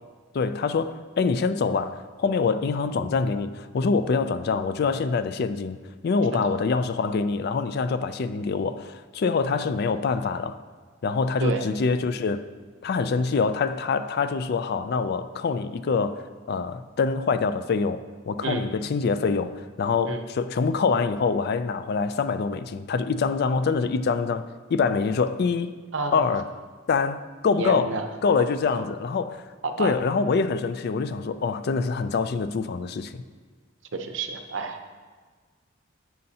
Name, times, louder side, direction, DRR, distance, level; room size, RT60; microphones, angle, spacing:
voice 1, 0.3-5.8 6.0-10.6 11.0-12.5 12.8-25.7 26.1-26.5 26.9-27.9 28.2-29.5 29.8-33.2, left 4 dB, 50° left, 0.3 m, -25 dB
voice 2, 11.4-11.7 18.4-18.7 20.1-20.2 25.9-26.3 27.6-28.1 28.4-28.5 28.7-28.9 29.6-29.9 33.9-34.9, right 3 dB, 65° right, 0.7 m, -30 dB
9.4 x 7.6 x 2.8 m
head